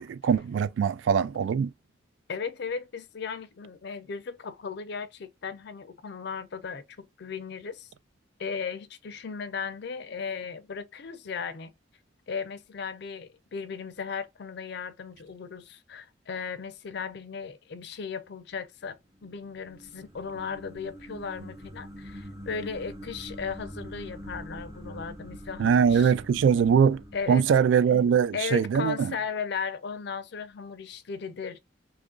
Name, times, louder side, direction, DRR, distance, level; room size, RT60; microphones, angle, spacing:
voice 1, 0.0-1.7 25.6-29.2, right 7 dB, 80° right, 0.3 m, -22 dB
voice 2, 2.3-7.9 8.4-11.7 12.3-26.1 27.1-27.4 27.9-31.6, left 5 dB, 65° left, 0.5 m, -36 dB
sound 1, 19.0-28.3, equal, 20° right, 0.6 m, -44 dB
3.0 x 2.4 x 3.7 m
head